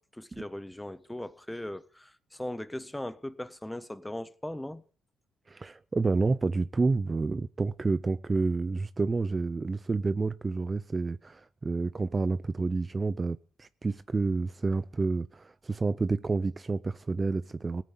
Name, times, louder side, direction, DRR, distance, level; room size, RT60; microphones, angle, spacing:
voice 1, 0.0-4.8, left 1 dB, 10° left, 1.3 m, -39 dB
voice 2, 5.5-17.8, right 3 dB, 25° right, 0.7 m, -29 dB
18.0 x 9.4 x 8.4 m
cardioid pair, 90°, 0 cm